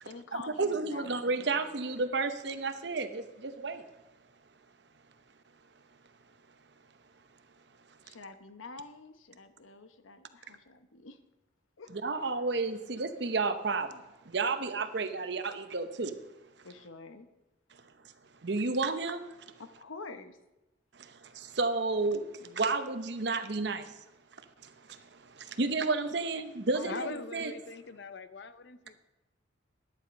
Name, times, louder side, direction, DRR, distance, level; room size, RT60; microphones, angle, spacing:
voice 1, 0.0-1.1 1.3-1.8 8.0-11.2 11.8-11.9 16.6-17.3 19.6-20.4 26.7-27.3, left 3 dB, 85° left, 0.9 m, -47 dB
voice 2, 0.6-3.8 11.9-16.2 18.4-19.5 20.9-24.0 24.6-27.5, right 3 dB, 60° right, 0.8 m, -32 dB
voice 3, 26.8-29.0, left 4 dB, 60° left, 0.6 m, -42 dB
11.5 x 9.6 x 5.2 m
head